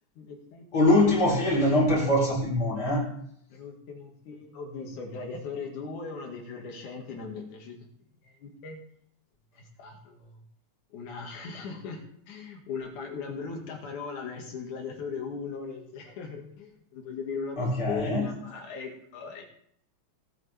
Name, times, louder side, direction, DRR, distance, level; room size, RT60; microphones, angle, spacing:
voice 1, 0.2-0.7 3.5-7.8 8.2-8.8 9.5-10.4 10.9-12.0 12.3-17.6 17.9-19.4, left 5 dB, 90° left, 1 dB, 3.5 m, -38 dB
voice 2, 0.7-3.1 17.6-18.3, left 1 dB, 30° left, -5 dB, 4.6 m, -23 dB
18.5 x 8.9 x 3.5 m, 0.70 s
omnidirectional pair, 3.4 m